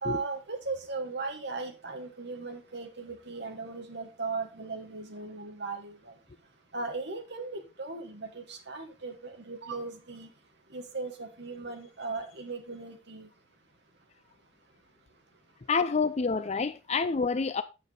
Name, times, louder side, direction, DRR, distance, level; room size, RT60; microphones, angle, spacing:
voice 1, 0.0-6.2 6.7-10.3 10.7-13.3, right 3 dB, 55° right, 1.4 m, -37 dB
voice 2, 15.7-17.6, left 4 dB, 35° left, 0.4 m, -28 dB
9.1 x 6.7 x 3.8 m
head